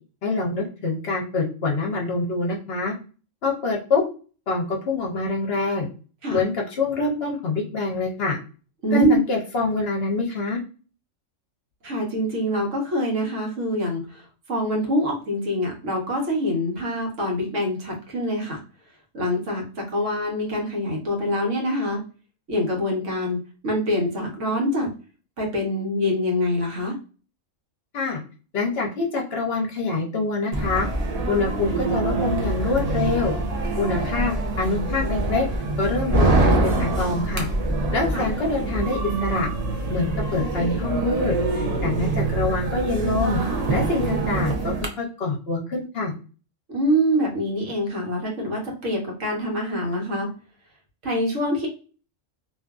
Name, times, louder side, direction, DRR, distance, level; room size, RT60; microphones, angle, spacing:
voice 1, 0.2-2.9 3.4-4.0 4.5-5.9 6.3-8.4 8.9-10.6 27.9-28.2 28.5-30.9 31.3-33.3 33.8-35.4 35.8-37.5 37.9-39.5 39.9-43.4 43.7-46.1, left 3 dB, 60° left, 0 dB, 0.8 m, -25 dB
voice 2, 8.8-9.2 11.8-14.2 14.5-18.6 19.1-22.0 22.5-23.4 23.6-24.9 25.4-27.0 38.1-38.3 46.7-50.3 51.0-51.7, equal, 70° right, 0 dB, 1.3 m, -25 dB
sound 1, 30.5-44.9, right 2 dB, 55° right, 0.4 m, -25 dB
2.8 x 2.5 x 2.2 m, 0.37 s
omnidirectional pair, 1.3 m